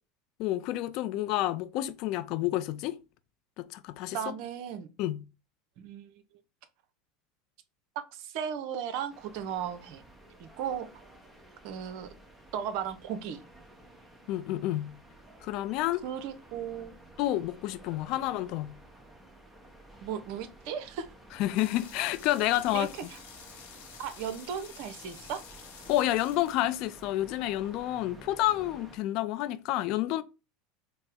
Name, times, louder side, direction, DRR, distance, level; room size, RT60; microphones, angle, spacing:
voice 1, 0.4-3.0 3.6-4.3 5.0-5.2 14.3-15.0 15.4-16.0 17.2-18.7 21.3-22.9 25.9-30.2, left 14 dB, 55° left, 0.3 m, -29 dB
voice 2, 4.1-4.9 5.8-6.1 8.1-10.0 10.4-10.9 11.6-12.1 12.5-13.4 16.0-16.9 20.0-21.1 22.7-23.2 24.0-25.4, right 8 dB, 60° right, 0.5 m, -36 dB
sound 1, 9.1-29.0, right 1 dB, 10° right, 0.9 m, -53 dB
sound 2, 21.6-27.4, left 7 dB, 70° left, 0.9 m, -51 dB
4.2 x 2.0 x 3.4 m
hypercardioid pair, 80°, 0 cm